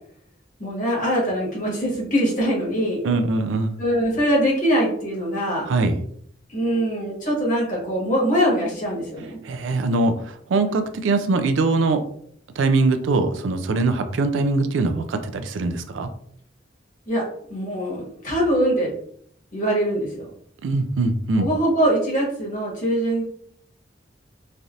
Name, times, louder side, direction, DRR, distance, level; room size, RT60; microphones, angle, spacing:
voice 1, 0.6-3.0 3.8-5.6 6.5-9.4 17.1-17.2 17.5-18.9 19.5-20.3 21.4-23.2, equal, 40° left, -4 dB, 1.2 m, -22 dB
voice 2, 3.0-3.8 5.7-6.0 9.4-12.0 12.6-16.1 20.6-21.5, right 3 dB, 85° right, 8 dB, 0.4 m, -22 dB
3.2 x 2.6 x 2.4 m, 0.65 s
head